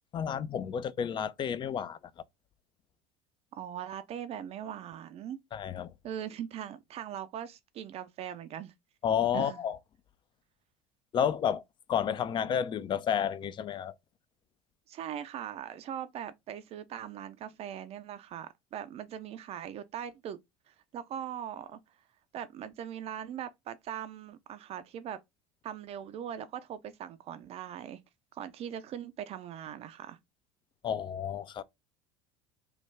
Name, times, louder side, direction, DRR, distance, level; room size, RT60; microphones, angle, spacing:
voice 1, 0.1-2.0 5.5-5.9 9.0-9.8 11.1-11.6 11.9-14.0 30.8-31.6, left 8 dB, 30° left, 0.3 m, -31 dB
voice 2, 3.5-5.4 6.0-8.7 9.3-9.6 14.9-20.4 20.7-21.8 22.3-25.2 25.6-28.0 28.3-30.2, right 10 dB, 45° right, 0.4 m, -40 dB
3.1 x 2.2 x 3.2 m
hypercardioid pair, 70°, 15 cm